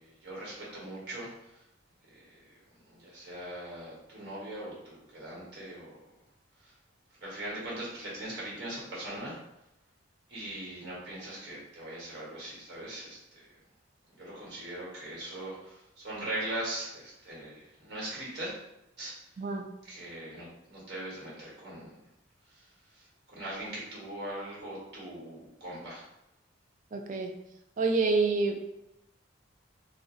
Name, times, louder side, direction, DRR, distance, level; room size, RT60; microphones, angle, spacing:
voice 1, 0.0-1.3 2.9-6.0 7.2-9.4 10.3-13.2 14.2-15.8 16.0-18.5 19.0-19.1 19.9-21.9 23.3-26.0, right 1 dB, 55° right, -5 dB, 1.2 m, -40 dB
voice 2, 26.9-27.3 27.8-28.6, right 3 dB, 40° right, 4 dB, 0.3 m, -27 dB
2.6 x 2.0 x 3.6 m, 0.87 s
head